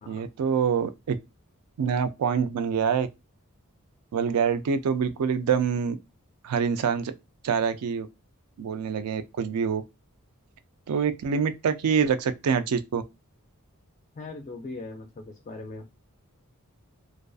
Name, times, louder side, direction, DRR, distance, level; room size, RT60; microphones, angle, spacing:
voice 1, 0.1-1.2 1.8-3.1 4.1-6.0 6.4-7.1 7.4-8.1 8.6-9.8 10.9-13.0, right 6 dB, 90° right, 0.4 m, -25 dB
voice 2, 14.2-15.9, left 3 dB, 35° left, 0.3 m, -40 dB
2.5 x 2.3 x 2.3 m
head